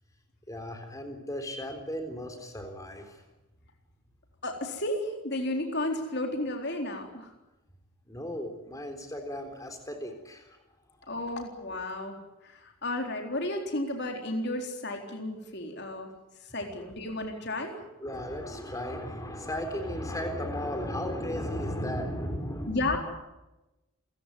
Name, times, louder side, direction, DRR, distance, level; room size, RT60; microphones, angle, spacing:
voice 1, 0.5-3.2 8.1-10.6 11.0-11.1 16.7-16.9 17.7-23.0, equal, 15° left, 6 dB, 3.8 m, -35 dB
voice 2, 4.4-7.3 11.1-12.2 12.4-16.1 16.5-17.8 22.7-23.0, left 1 dB, 50° left, 3 dB, 3.9 m, -33 dB
28.5 x 16.5 x 9.5 m, 1.0 s
head